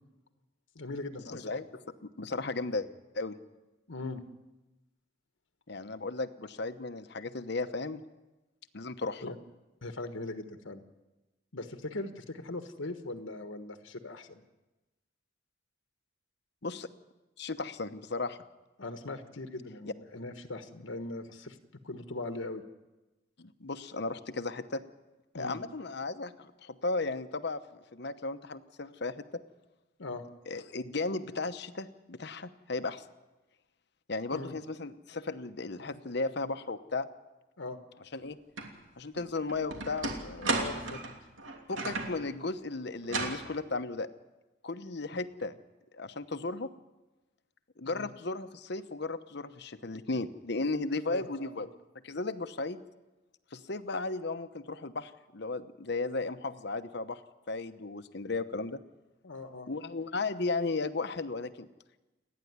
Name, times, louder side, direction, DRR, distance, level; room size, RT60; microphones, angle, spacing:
voice 1, 0.7-1.5 3.9-4.2 9.2-9.4 9.8-10.8 11.5-14.4 18.8-21.6 21.8-22.6 25.3-25.6 30.0-30.2 34.3-34.5 37.6-37.8 40.5-41.0 47.8-48.1 51.1-51.6 59.2-59.7, left 2 dB, 80° left, 7 dB, 1.4 m, -40 dB
voice 2, 1.3-1.7 2.0-2.9 3.1-3.4 5.7-8.0 8.7-9.2 16.6-16.9 17.4-18.4 23.4-24.8 25.3-29.2 30.5-33.0 34.1-37.1 38.1-38.4 39.0-40.6 41.7-44.1 44.6-45.5 45.9-46.7 47.8-51.7 52.0-52.8 53.5-57.2 57.5-58.8 59.7-61.7, left 3 dB, 60° left, 11 dB, 1.0 m, -35 dB
sound 1, 38.6-38.7 39.2-42.2 43.0-43.4, right 3 dB, 80° right, 3.0 m, -34 dB
29.0 x 10.5 x 9.6 m, 1.1 s
head